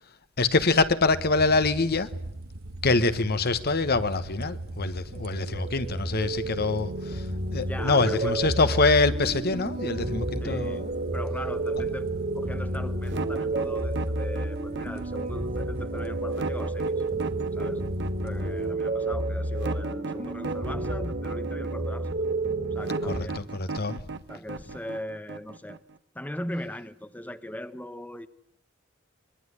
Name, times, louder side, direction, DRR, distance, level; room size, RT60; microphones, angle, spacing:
voice 1, 0.4-2.1 2.8-7.2 7.5-10.8 23.1-24.0, left 3 dB, 50° left, 1.3 m, -25 dB
sound 1, 1.0-18.7, right 1 dB, 80° right, 1.9 m, -41 dB
sound 2, 4.9-23.2, right 2 dB, 40° right, 2.7 m, -31 dB
voice 2, 7.6-8.4 10.4-17.0 17.5-17.8 18.2-22.2 22.7-23.5 24.3-25.8 26.1-28.3, left 1 dB, 10° left, 1.0 m, -39 dB
sound 3, 13.1-26.0, right 4 dB, 60° right, 1.1 m, -37 dB
25.0 x 21.5 x 9.7 m
head